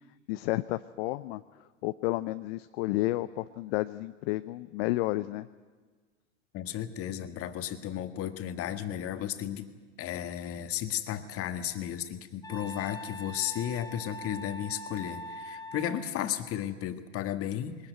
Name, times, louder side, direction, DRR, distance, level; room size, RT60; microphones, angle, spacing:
voice 1, 0.3-1.4 1.8-5.5, left 18 dB, 50° left, 12 dB, 0.7 m, -31 dB
voice 2, 6.5-9.7 10.0-17.9, left 11 dB, 35° left, 8 dB, 1.8 m, -34 dB
Wind instrument woodwind instrument, 12.4-16.1, equal, 10° left, 1.4 m, -42 dB
21.5 x 20.5 x 9.2 m, 1.4 s
hypercardioid pair, 110°, 38 cm